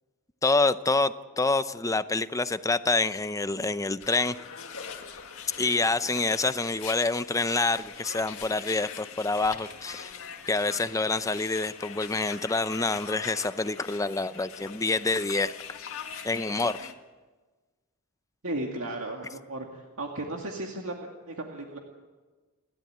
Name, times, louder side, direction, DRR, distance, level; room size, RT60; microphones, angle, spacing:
voice 1, 0.4-4.4 5.6-10.1 10.5-15.5 16.2-16.9, left 3 dB, 15° left, 13 dB, 0.6 m, -27 dB
sound 1, 4.0-16.9, left 7 dB, 65° left, 2.0 m, -42 dB
voice 2, 18.4-21.8, right 2 dB, 65° right, 1 dB, 2.1 m, -35 dB
30.0 x 12.5 x 8.8 m, 1.3 s
head